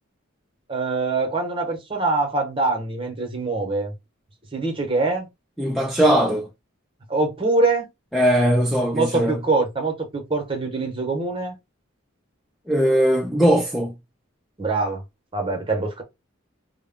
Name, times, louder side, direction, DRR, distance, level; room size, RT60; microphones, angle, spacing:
voice 1, 0.7-3.9 4.5-5.3 7.1-7.9 8.9-11.5 14.6-15.0 15.3-16.0, right 3 dB, 25° right, 0.8 m, -24 dB
voice 2, 5.6-6.5 8.1-9.4 12.7-13.9, equal, ahead, 0.3 m, -19 dB
2.2 x 2.0 x 3.5 m
head